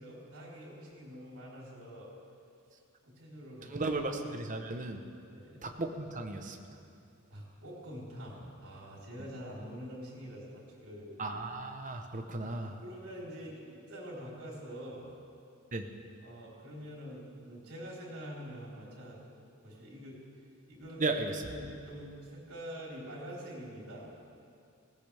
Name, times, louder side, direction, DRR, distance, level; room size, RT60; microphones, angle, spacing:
voice 1, 0.0-2.1 3.0-3.9 5.2-5.6 7.3-11.4 12.8-15.1 16.2-19.2 19.6-20.2 20.7-21.1 21.4-24.1, equal, 85° right, -4 dB, 4.1 m, -45 dB
voice 2, 3.7-5.0 5.6-6.6 11.2-12.8 15.7-15.8 21.0-21.4, right 2 dB, 35° right, 4 dB, 1.0 m, -35 dB
19.5 x 17.0 x 3.5 m, 2.5 s
head